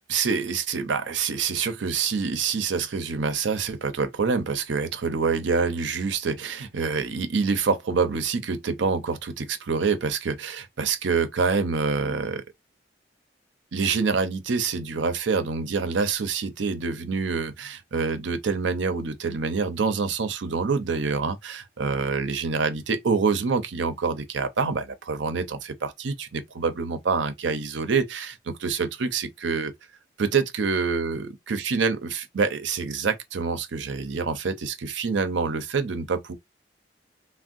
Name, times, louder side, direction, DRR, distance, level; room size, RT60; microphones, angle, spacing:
voice 1, 0.1-12.4 13.7-29.7 30.2-36.3, right 5 dB, 85° right, 0.6 m, -26 dB
3.5 x 2.1 x 2.5 m
head